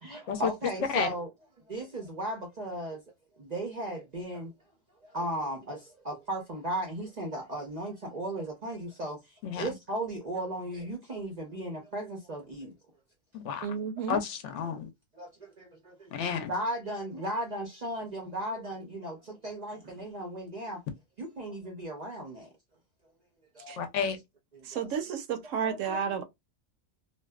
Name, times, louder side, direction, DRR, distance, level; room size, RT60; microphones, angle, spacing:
voice 1, 0.0-1.3 1.7-3.0 3.4-4.5 5.0-9.2 9.6-12.7 15.2-16.1 16.5-20.8 21.2-22.5 23.5-23.8 24.5-24.9 25.4-26.1, right 1 dB, 50° right, 0.5 m, -36 dB
voice 2, 9.4-9.7 13.3-13.7 14.1-14.9 16.1-16.5 23.8-24.2, left 7 dB, 70° left, 0.8 m, -31 dB
voice 3, 13.6-14.2 23.7-23.8 24.7-26.2, right 7 dB, 75° right, 0.9 m, -32 dB
2.6 x 2.1 x 2.2 m
omnidirectional pair, 1.4 m